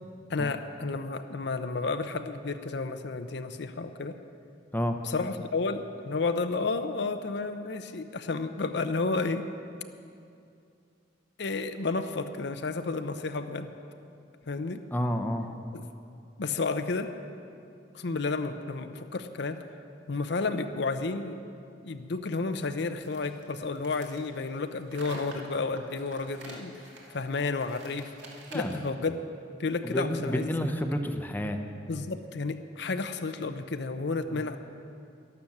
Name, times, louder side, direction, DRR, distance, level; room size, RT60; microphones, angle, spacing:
voice 1, 0.3-4.2 5.0-9.5 11.4-13.7 14.5-14.8 15.7-15.9 16.4-17.1 17.9-19.6 20.1-21.4 21.8-26.7 27.1-28.1 28.5-29.3 29.6-30.5 31.9-34.6, left 3 dB, 65° left, 9 dB, 0.7 m, -31 dB
voice 2, 14.9-15.5 28.5-28.8 29.8-31.6 34.3-34.4, equal, 10° left, 5 dB, 0.8 m, -30 dB
sound 1, 23.0-28.9, right 2 dB, 70° right, 2.4 m, -47 dB
12.0 x 12.0 x 7.2 m, 2.5 s
head